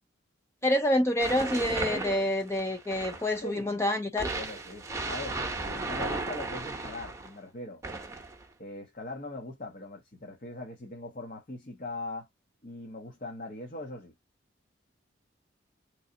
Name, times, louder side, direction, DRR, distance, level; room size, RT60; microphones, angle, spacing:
voice 1, 0.6-4.3, left 1 dB, 15° left, 0.4 m, -27 dB
sound 1, 1.2-3.4 4.2-7.3 7.8-8.4, right 3 dB, 15° right, 0.9 m, -35 dB
voice 2, 3.4-3.8 4.3-7.8 8.6-12.3 12.6-14.1, left 2 dB, 45° left, 1.0 m, -41 dB
3.8 x 3.2 x 2.6 m
head